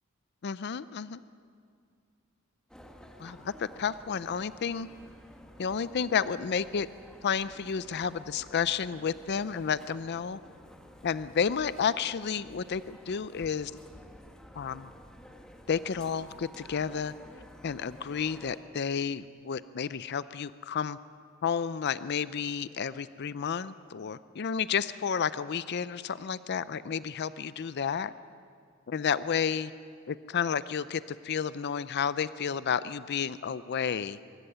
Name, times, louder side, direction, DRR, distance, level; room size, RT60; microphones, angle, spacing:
voice 1, 0.4-1.2 3.2-4.9 5.6-6.9 7.2-10.4 11.0-13.7 14.6-14.9 15.7-17.1 17.6-21.0 21.4-28.1 28.9-29.7 30.1-34.2, left 7 dB, 55° left, 15 dB, 0.5 m, -31 dB
sound 1, 2.7-18.6, equal, 5° left, 1.6 m, -52 dB
24.5 x 13.5 x 9.9 m, 2.2 s
head